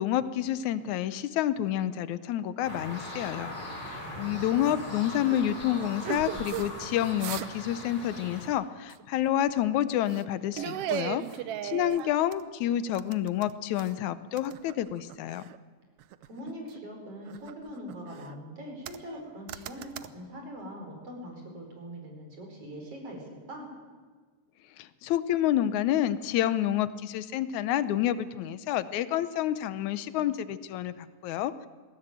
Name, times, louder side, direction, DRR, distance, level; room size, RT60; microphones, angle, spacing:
voice 1, 0.0-3.6 4.2-11.2 11.6-15.5 24.8-31.7, left 11 dB, 75° left, 14 dB, 2.0 m, -29 dB
sound 1, 2.6-8.5, left 1 dB, 30° left, 6.7 m, -40 dB
voice 2, 4.0-4.8 16.3-23.7, equal, 45° right, 1 dB, 5.8 m, -42 dB
sound 2, 4.6-4.8 5.3-6.7 7.0-7.7 8.0-8.2 8.9-9.6 10.1-10.3 10.5-12.5 12.9-14.0 14.4-15.6 16.0-16.8 17.2-18.3 18.8-19.2 19.5-20.1, right 12 dB, 85° right, 1.3 m, -37 dB
20.5 x 16.5 x 9.1 m, 1.4 s
omnidirectional pair, 3.6 m